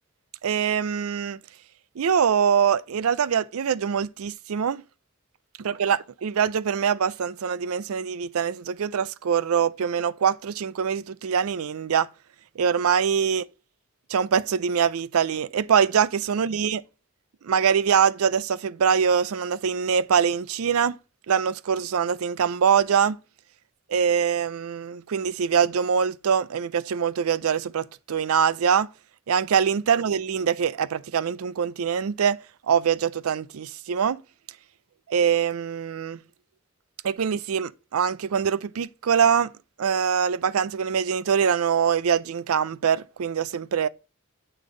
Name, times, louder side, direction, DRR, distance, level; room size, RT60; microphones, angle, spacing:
voice 1, 0.4-1.4 2.0-4.8 5.6-12.1 12.6-13.4 14.1-16.8 17.4-21.0 21.3-23.2 23.9-28.9 29.3-32.4 32.7-34.2 35.1-36.2 37.0-39.5 39.8-43.9, right 7 dB, 90° right, 0.4 m, -23 dB
8.7 x 3.4 x 6.2 m
head